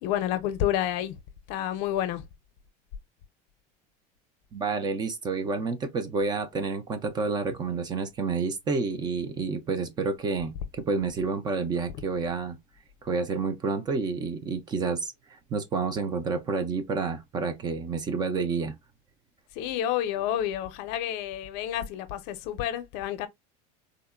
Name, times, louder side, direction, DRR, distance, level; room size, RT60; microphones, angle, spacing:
voice 1, 0.0-1.2 1.5-2.2 19.6-23.3, left 11 dB, 60° left, 0.5 m, -29 dB
voice 2, 4.5-12.6 13.0-18.8, right 4 dB, 20° right, 0.3 m, -29 dB
3.6 x 2.1 x 2.3 m
cardioid pair, 155°, 19 cm